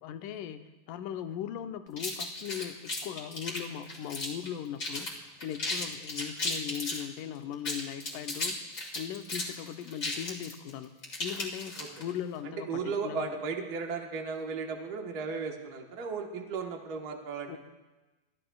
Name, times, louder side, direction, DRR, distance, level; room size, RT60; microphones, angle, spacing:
voice 1, 0.0-0.6 0.9-5.1 5.4-8.6 9.0-10.9 11.2-13.3 17.5-17.6, left 10 dB, 80° left, 8 dB, 2.2 m, -38 dB
sound 1, 2.0-4.5 4.8-5.1 5.4-7.0 7.5-12.1, left 2 dB, 30° left, 1.8 m, -35 dB
voice 2, 12.4-17.6, right 5 dB, 80° right, 2 dB, 0.8 m, -35 dB
23.5 x 14.5 x 2.3 m, 1.1 s
omnidirectional pair, 3.8 m